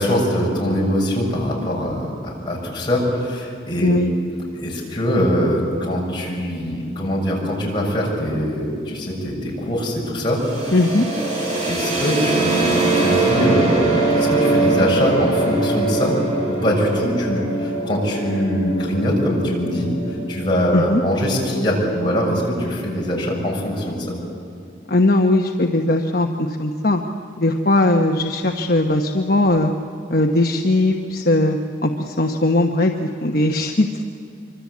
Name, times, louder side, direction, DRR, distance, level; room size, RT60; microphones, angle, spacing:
voice 1, 0.0-4.0 4.5-10.7 11.7-16.1 16.5-19.9 20.3-24.2, equal, 25° left, -3 dB, 6.9 m, -22 dB
voice 2, 3.8-4.1 10.7-11.1 20.7-21.0 24.9-27.0 27.4-29.7 30.1-31.6 31.8-34.0, left 2 dB, 50° left, 3 dB, 1.1 m, -19 dB
sound 1, 10.3-22.0, right 3 dB, 40° right, 7.2 m, -23 dB
25.5 x 25.0 x 8.5 m, 2.5 s
head